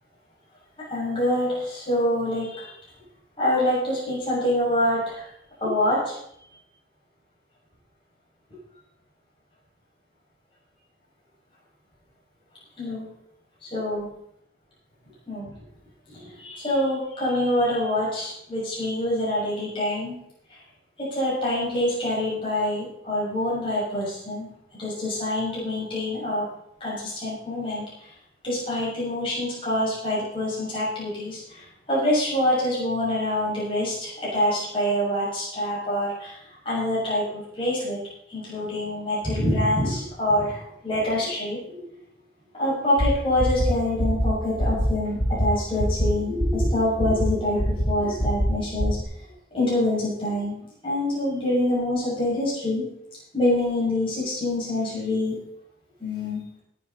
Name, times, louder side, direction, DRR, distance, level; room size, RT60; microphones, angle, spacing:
voice 1, 0.9-2.7 3.4-5.3 5.6-6.1 12.8-13.1 13.6-14.0 15.3-15.5 16.1-20.2 21.0-24.5 24.8-26.5 26.8-28.1 28.4-38.0 38.3-41.8 42.5-49.0 49.5-52.8 53.3-55.3 56.0-56.4, left 1 dB, 30° left, -8 dB, 6.5 m, -26 dB
sound 1, 43.0-43.1 43.4-43.7 44.0-44.3 44.6-44.9 45.2-45.5 45.8-46.1 46.4-46.7 47.0-47.3 47.6-47.9 48.2-48.5 48.8-49.0, equal, 80° left, 2.6 m, -24 dB
18.5 x 8.5 x 4.2 m, 0.73 s
head